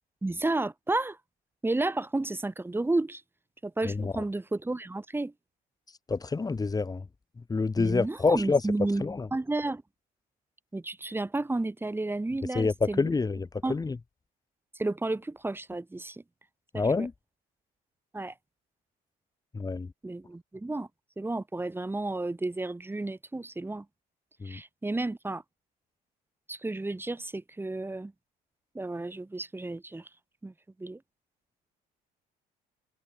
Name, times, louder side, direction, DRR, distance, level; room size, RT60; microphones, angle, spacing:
voice 1, 0.2-1.2 1.6-3.2 3.6-5.3 7.8-9.8 10.7-13.1 13.6-13.8 14.7-16.2 16.7-17.1 18.1-18.3 20.0-20.9 21.2-23.8 24.4-25.4 26.5-28.1 28.7-30.1 30.4-30.5 30.8-31.0, right 2 dB, 15° right, 4.7 m, -32 dB
voice 2, 6.1-7.0 7.5-8.6 9.0-9.3 12.5-14.0 16.7-17.1 19.5-19.9 24.4-24.6, left 4 dB, 20° left, 3.7 m, -27 dB
cardioid pair, 110°, 17 cm